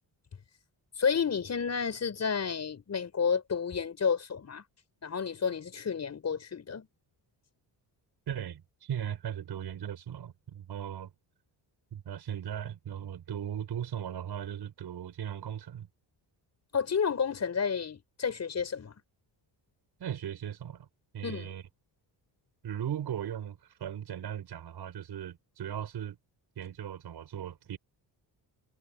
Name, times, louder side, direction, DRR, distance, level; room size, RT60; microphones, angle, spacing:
voice 1, 1.0-4.6 5.0-6.9 16.7-19.0 21.2-21.5, left 6 dB, 35° left, 6.9 m, -31 dB
voice 2, 8.3-11.1 11.9-15.9 20.0-20.9 21.1-21.6 22.6-26.2 26.6-27.8, right 9 dB, 65° right, 6.1 m, -38 dB
wide cardioid pair, 160°, 43 cm